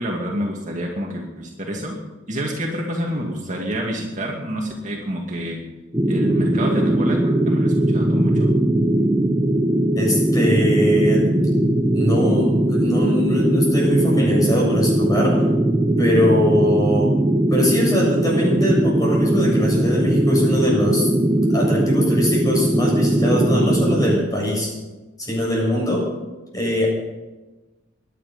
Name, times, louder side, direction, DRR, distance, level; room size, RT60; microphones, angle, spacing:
voice 1, 0.0-2.0 2.3-5.6 6.1-8.5, equal, 40° right, -1 dB, 2.4 m, -28 dB
sound 1, 5.9-24.2, right 1 dB, 15° right, 0.9 m, -19 dB
voice 2, 10.0-11.4 11.9-15.4 16.0-17.1 17.5-21.1 21.5-24.7 25.2-26.0 26.5-26.9, left 1 dB, 20° left, -2 dB, 7.3 m, -22 dB
22.5 x 10.5 x 5.5 m, 1.1 s
head